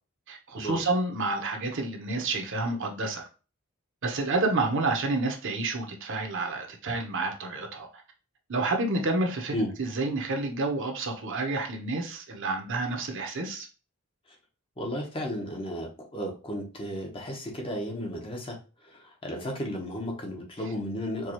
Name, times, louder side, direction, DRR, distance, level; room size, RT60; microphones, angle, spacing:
voice 1, 0.3-3.2 4.0-7.9 8.5-9.5 9.8-13.7, right 2 dB, 60° right, 0.8 m, -29 dB
voice 2, 14.8-21.3, equal, 25° left, 0.8 m, -34 dB
4.6 x 2.3 x 2.9 m
head